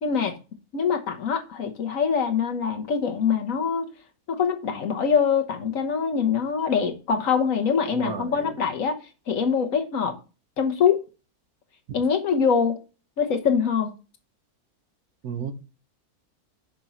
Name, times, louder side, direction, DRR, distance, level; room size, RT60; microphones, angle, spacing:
voice 1, 0.0-0.4 0.7-3.9 4.3-9.0 9.3-10.2 10.6-11.0 11.9-12.8 13.2-13.9, left 6 dB, 65° left, 1.4 m, -24 dB
voice 2, 7.9-8.3 15.2-15.5, right 7 dB, 80° right, 1.5 m, -32 dB
6.0 x 5.3 x 4.2 m
omnidirectional pair, 1.6 m